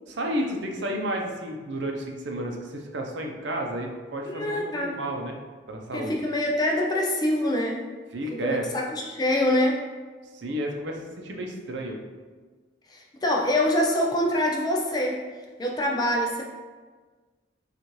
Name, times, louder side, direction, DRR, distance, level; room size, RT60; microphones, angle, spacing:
voice 1, 0.1-5.4 5.7-6.1 8.1-8.7 10.3-12.0, right 1 dB, 65° right, 2 dB, 0.6 m, -31 dB
voice 2, 4.3-5.0 5.9-7.8 8.3-9.9 12.9-15.2 15.6-16.4, left 1 dB, 20° left, 0 dB, 0.4 m, -25 dB
6.3 x 2.5 x 3.0 m, 1.4 s
head